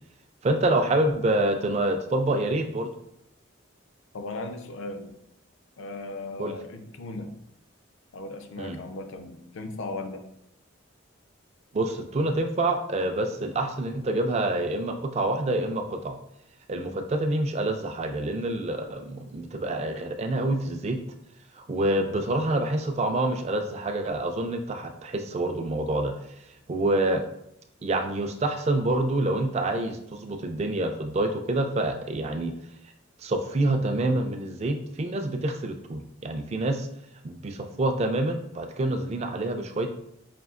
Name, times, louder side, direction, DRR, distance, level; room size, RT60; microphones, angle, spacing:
voice 1, 0.4-2.9 6.4-6.5 8.6-8.8 11.7-16.2 16.7-21.0 21.6-26.1 26.7-27.2 27.8-32.5 33.2-36.9 37.2-39.9, right 2 dB, 30° right, 5 dB, 0.3 m, -27 dB
voice 2, 4.1-5.1 5.8-7.5 8.1-10.2, left 2 dB, 70° left, 6 dB, 0.5 m, -37 dB
5.1 x 2.7 x 2.4 m, 0.76 s
head